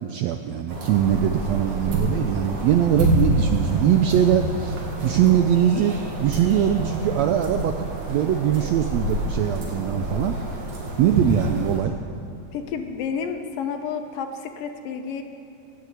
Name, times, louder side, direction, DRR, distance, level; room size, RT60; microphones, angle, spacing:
voice 1, 0.0-4.8 5.0-10.4 11.0-12.0, right 10 dB, 85° right, 7 dB, 1.5 m, -22 dB
sound 1, 0.7-11.8, right 2 dB, 65° right, 3.5 m, -27 dB
voice 2, 12.5-15.2, left 6 dB, 90° left, 5 dB, 2.7 m, -30 dB
21.5 x 7.9 x 8.5 m, 2.9 s
omnidirectional pair, 3.8 m